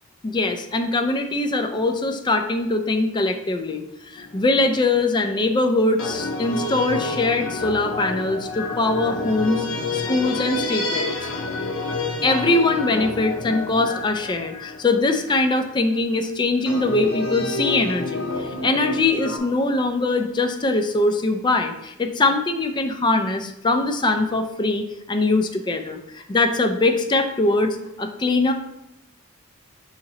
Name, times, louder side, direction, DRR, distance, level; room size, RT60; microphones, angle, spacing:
voice 1, 0.2-9.7 9.9-11.1 12.2-28.5, left 2 dB, 20° left, 6 dB, 0.4 m, -22 dB
sound 1, 4.2-4.7 6.0-15.6 16.7-19.4, left 3 dB, 65° left, 0.7 m, -29 dB
6.6 x 2.8 x 2.8 m, 0.86 s
head